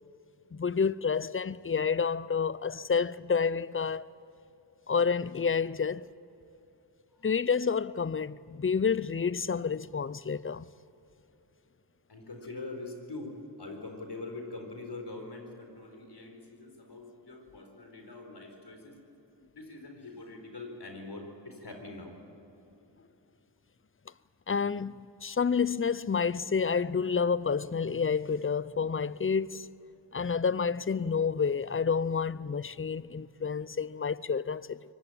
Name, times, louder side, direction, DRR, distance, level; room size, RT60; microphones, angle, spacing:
voice 1, 0.5-4.1 4.9-6.1 7.2-10.6 24.5-29.7 30.1-34.9, left 6 dB, 30° left, 0.6 m, -29 dB
voice 2, 12.1-19.0 19.5-22.2, left 2 dB, 65° left, 4.5 m, -43 dB
23.5 x 19.0 x 8.8 m
cardioid pair, 40°, 43 cm